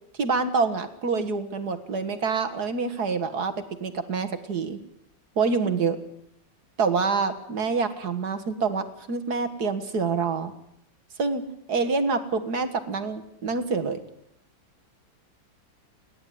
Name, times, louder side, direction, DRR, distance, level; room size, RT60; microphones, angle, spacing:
voice 1, 0.2-3.5 3.8-4.8 5.4-6.0 6.8-10.5 11.2-14.0, right 4 dB, 55° right, 9 dB, 2.1 m, -26 dB
29.0 x 11.0 x 9.3 m, 0.76 s
omnidirectional pair, 2.1 m